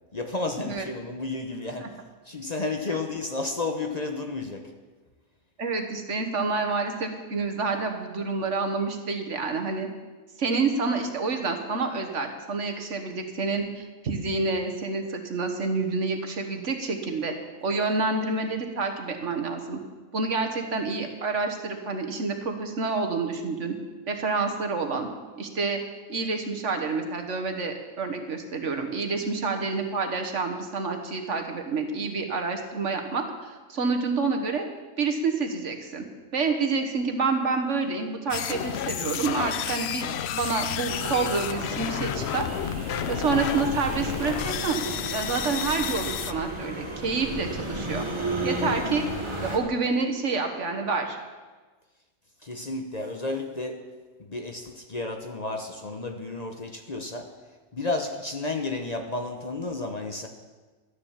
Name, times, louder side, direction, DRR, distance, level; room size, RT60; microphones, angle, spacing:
voice 1, 0.1-2.0 2.2-4.7 52.4-53.8 54.2-57.3 57.7-60.3, left 3 dB, 35° left, 5 dB, 1.0 m, -32 dB
voice 2, 5.6-9.9 10.4-17.3 17.6-19.8 20.1-23.7 24.1-25.1 25.4-25.8 26.1-34.7 35.0-36.0 36.3-42.5 43.1-44.8 45.1-48.1 48.4-49.0 49.4-51.2, right 4 dB, 65° right, 4 dB, 1.7 m, -28 dB
sound 1, 38.3-46.3, left 10 dB, 65° left, 0.7 m, -31 dB
sound 2, 40.9-49.6, right 1 dB, 20° right, 1.9 m, -33 dB
12.5 x 10.5 x 7.3 m, 1.3 s
omnidirectional pair, 1.4 m